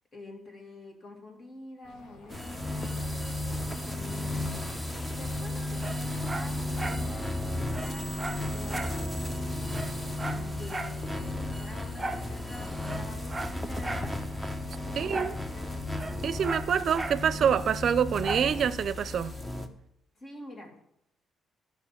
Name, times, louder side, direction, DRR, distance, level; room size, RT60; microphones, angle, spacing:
voice 1, 0.1-3.2 3.8-9.7 10.3-14.3 14.8-15.9 20.2-20.8, left 1 dB, 40° left, 2.4 m, -47 dB
sound 1, 1.8-19.4, left 2 dB, 75° left, 2.2 m, -52 dB
sound 2, 2.3-19.7, left 1 dB, 10° left, 1.0 m, -34 dB
Dog, 5.8-7.1 7.4-7.5 7.7-9.0 9.3-9.4 9.7-11.0 12.0-12.3 12.8-14.1 15.1-15.4 15.7-17.2 18.2-18.5 19.0-19.1, right 2 dB, 20° right, 0.8 m, -37 dB
voice 2, 14.9-15.3 16.2-19.3, right 8 dB, 60° right, 0.5 m, -26 dB
12.5 x 5.9 x 5.8 m
cardioid pair, 90°, 0 cm